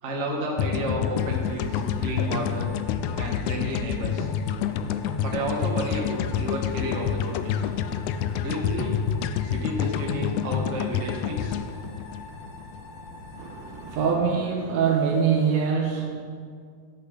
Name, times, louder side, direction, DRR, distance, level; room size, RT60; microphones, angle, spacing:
voice 1, 0.0-2.7 3.2-4.3 5.2-7.7 8.4-9.0 9.4-11.6, right 1 dB, 40° right, -1 dB, 0.9 m, -31 dB
sound 1, 0.6-12.8, left 8 dB, 90° left, 1.6 m, -28 dB
sound 2, 1.1-14.1, left 2 dB, 45° left, 1.6 m, -45 dB
voice 2, 13.4-16.1, right 6 dB, 70° right, 1 dB, 1.9 m, -24 dB
11.5 x 8.1 x 5.0 m, 2.1 s
omnidirectional pair, 3.8 m